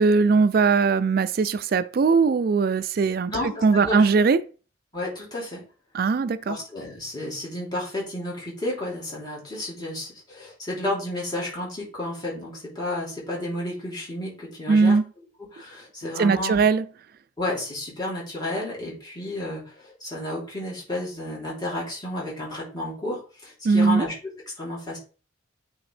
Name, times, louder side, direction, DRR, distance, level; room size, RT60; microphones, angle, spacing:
voice 1, 0.0-3.3 3.6-4.4 5.9-6.6 14.7-15.0 16.2-16.8 23.6-24.1, right 4 dB, 50° right, 0.3 m, -20 dB
voice 2, 3.3-4.1 4.9-5.6 6.5-15.0 15.5-16.6 17.4-24.1 24.6-25.0, left 1 dB, 20° left, 3.1 m, -32 dB
8.7 x 3.6 x 3.3 m
head